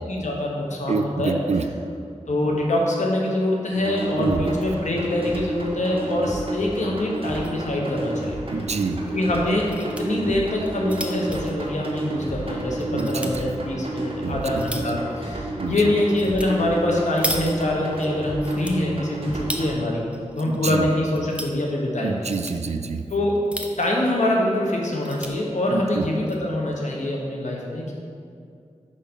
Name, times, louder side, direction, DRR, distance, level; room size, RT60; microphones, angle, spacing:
voice 1, 0.0-1.3 2.3-8.4 9.1-20.0 20.3-22.3 23.1-23.4 23.8-27.9, left 1 dB, 80° left, -1 dB, 1.2 m, -24 dB
voice 2, 0.9-1.7 4.2-4.5 8.5-9.0 12.9-13.4 14.2-14.4 14.7-14.8 15.6-15.8 20.5-20.9 22.0-23.1 25.7-26.1, right 4 dB, 65° right, 8 dB, 0.4 m, -27 dB
sound 1, 3.7-19.7, right 1 dB, 50° right, 1.2 m, -31 dB
sound 2, 7.1-7.6 7.9-8.0 8.3-8.4 9.4-10.0 10.6-12.4 12.8-13.3 14.0-15.0 16.2-16.5 16.8-18.1 18.4-19.7 20.1-20.7 21.0-21.6 22.1-22.6 23.3-24.0 24.5-24.6 24.8-25.3 26.0-26.4, right 1 dB, 10° right, 0.6 m, -34 dB
5.4 x 4.9 x 5.3 m, 2.4 s
wide cardioid pair, 50°, 12 cm